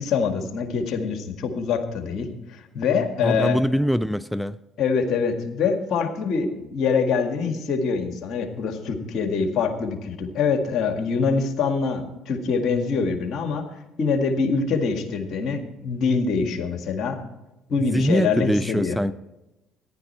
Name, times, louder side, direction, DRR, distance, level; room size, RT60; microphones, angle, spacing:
voice 1, 0.0-3.6 4.8-13.7 14.0-17.2 17.7-19.0, left 5 dB, 60° left, 1.9 m, -24 dB
voice 2, 3.2-4.6 17.9-19.1, equal, ahead, 0.4 m, -23 dB
14.5 x 11.0 x 4.3 m
supercardioid pair, 65°, 0 cm